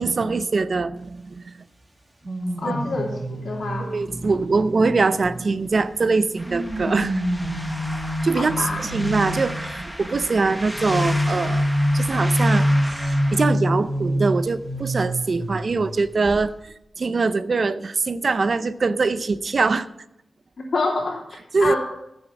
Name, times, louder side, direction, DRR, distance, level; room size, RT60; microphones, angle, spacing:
voice 1, 0.0-1.6 2.7-2.8 3.8-7.2 8.2-11.7 11.9-16.5 17.0-19.9 21.5-21.7, right 4 dB, 50° right, 14 dB, 0.6 m, -23 dB
sound 1, 2.2-5.8 6.5-9.7 10.7-16.0 16.2-16.5, equal, 30° right, 2.5 m, -26 dB
voice 2, 2.6-3.9 8.3-8.8 20.7-21.2 21.6-21.8, left 3 dB, 65° left, -6 dB, 2.8 m, -26 dB
sound 2, 6.4-13.4, equal, ahead, 1.1 m, -34 dB
15.0 x 7.2 x 5.8 m, 0.86 s
wide cardioid pair, 85°, 0 cm